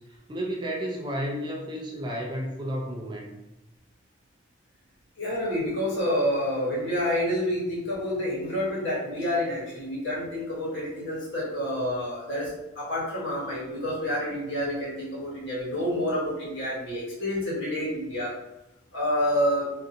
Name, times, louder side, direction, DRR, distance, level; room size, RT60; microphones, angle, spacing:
voice 1, 0.0-3.4, equal, 25° right, -1 dB, 0.4 m, -32 dB
voice 2, 5.2-18.3 18.9-19.7, equal, 80° left, -6 dB, 1.2 m, -28 dB
2.6 x 2.5 x 2.5 m, 0.97 s
head